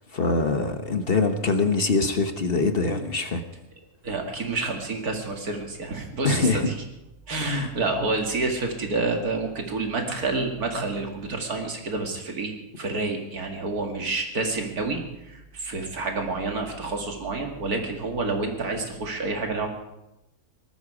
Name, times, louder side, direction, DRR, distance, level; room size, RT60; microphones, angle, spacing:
voice 1, 0.1-3.4 6.2-6.7 7.4-7.7, left 3 dB, 45° left, 7 dB, 1.2 m, -24 dB
voice 2, 4.0-6.7 7.3-15.0 15.3-19.7, right 3 dB, 80° right, 3 dB, 2.6 m, -28 dB
19.0 x 14.0 x 5.0 m, 0.91 s
omnidirectional pair, 1.6 m